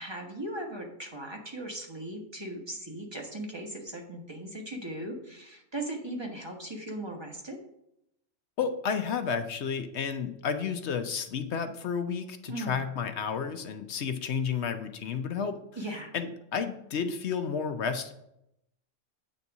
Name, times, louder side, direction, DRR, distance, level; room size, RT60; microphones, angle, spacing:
voice 1, 0.0-7.6 12.5-12.8 15.8-16.1, right 1 dB, 20° right, 1 dB, 1.2 m, -38 dB
voice 2, 8.6-15.6 16.1-18.1, left 6 dB, 65° left, 8 dB, 0.9 m, -31 dB
8.7 x 4.1 x 6.0 m, 0.81 s
omnidirectional pair, 1.3 m